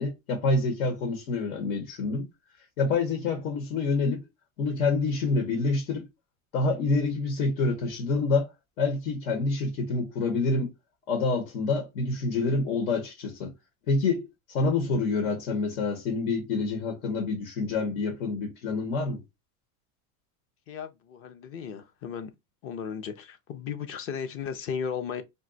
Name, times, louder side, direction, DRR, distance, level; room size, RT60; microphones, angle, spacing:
voice 1, 0.0-2.3 2.8-4.2 4.6-6.1 6.5-8.5 8.8-10.7 11.1-13.5 13.9-19.2, left 3 dB, 85° left, 1.2 m, -27 dB
voice 2, 20.7-22.3 22.6-25.2, left 7 dB, 35° left, 0.5 m, -35 dB
2.6 x 2.3 x 3.8 m
supercardioid pair, 130°, 42 cm